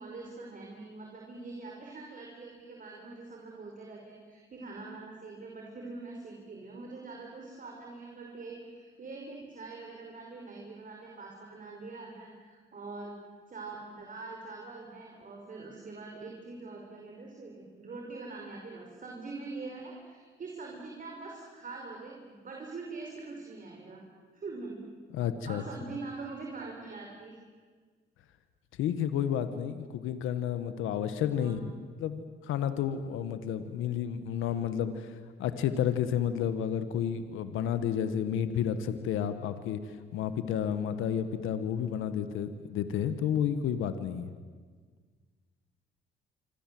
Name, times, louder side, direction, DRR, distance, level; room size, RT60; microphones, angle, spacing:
voice 1, 0.0-13.2 13.5-24.0 24.3-24.9 25.4-27.4 31.3-31.5, right 3 dB, 45° right, 0 dB, 5.3 m, -43 dB
voice 2, 25.1-25.6 28.8-31.7 32.0-44.3, left 9 dB, 90° left, 10 dB, 1.6 m, -31 dB
26.0 x 25.5 x 7.8 m, 1.5 s
cardioid pair, 90°, 20 cm